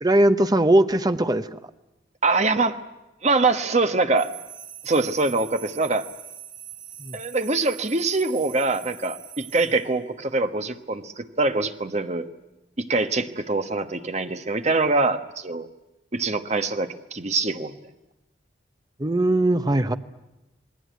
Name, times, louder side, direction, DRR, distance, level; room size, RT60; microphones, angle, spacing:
voice 1, 0.0-1.6 7.0-7.2 19.0-19.9, right 1 dB, 20° right, 10 dB, 0.9 m, -20 dB
voice 2, 2.2-2.8 3.2-4.3 4.8-6.1 7.1-12.3 12.8-15.7 16.1-17.7, right 3 dB, 35° right, 8 dB, 1.2 m, -24 dB
sound 1, 4.2-9.9, right 12 dB, 70° right, 4.0 m, -42 dB
27.5 x 19.5 x 9.4 m, 0.96 s
head